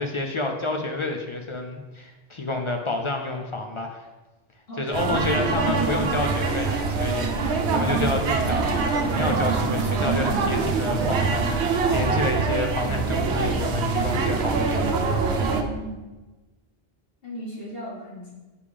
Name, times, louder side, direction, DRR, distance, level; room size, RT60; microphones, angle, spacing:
voice 1, 0.0-4.0 4.8-14.9, left 2 dB, 45° left, 3 dB, 0.4 m, -29 dB
voice 2, 4.7-5.3 7.4-7.8 15.4-16.0 17.2-18.3, equal, 60° left, -5 dB, 2.0 m, -37 dB
sound 1, 4.9-15.6, right 4 dB, 85° right, 0.9 m, -24 dB
6.8 x 3.4 x 5.0 m, 1.2 s
omnidirectional pair, 1.1 m